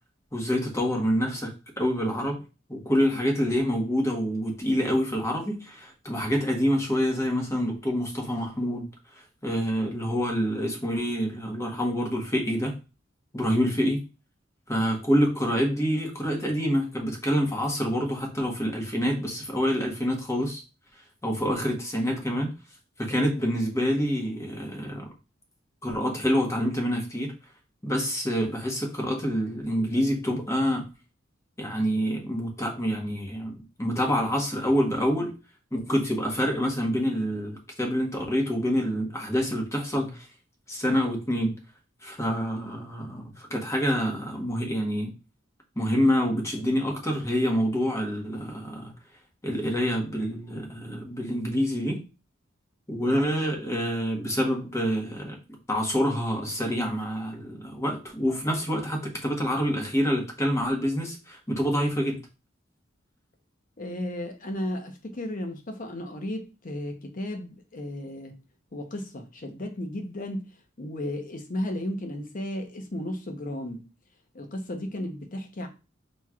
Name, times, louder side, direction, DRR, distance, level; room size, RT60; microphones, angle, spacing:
voice 1, 0.3-2.4 2.7-8.9 9.1-12.8 13.3-14.0 14.7-20.6 21.2-22.5 23.0-25.1 25.8-27.3 27.8-30.9 31.6-35.3 35.7-40.3 40.7-41.5 42.0-45.1 45.8-48.9 49.4-52.0 52.9-55.4 55.7-62.2, equal, 15° left, 1.0 m, -27 dB
voice 2, 63.8-68.4 68.7-70.4 70.8-73.8 74.3-75.7, left 1 dB, 45° left, 0.8 m, -34 dB
5.7 x 3.1 x 2.4 m
head